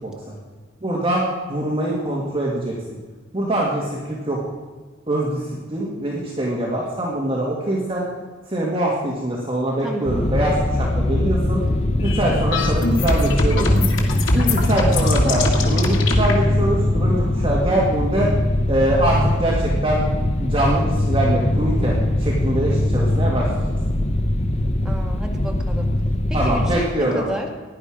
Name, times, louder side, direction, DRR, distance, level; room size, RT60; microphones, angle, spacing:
voice 1, 0.0-0.3 0.8-1.2 1.5-2.7 3.3-4.4 5.1-8.1 8.5-11.6 12.0-13.7 14.3-18.3 18.7-20.1 20.4-23.8 26.3-27.2, right 1 dB, 30° right, -4 dB, 2.2 m, -23 dB
voice 2, 9.8-10.1 13.5-13.8 24.8-25.9 26.3-27.5, equal, 5° right, 0 dB, 1.9 m, -31 dB
sound 1, 10.1-26.8, left 1 dB, 35° left, 0.8 m, -21 dB
sound 2, 12.0-16.4, left 2 dB, 70° left, 2.1 m, -23 dB
16.5 x 11.0 x 5.1 m, 1.4 s
head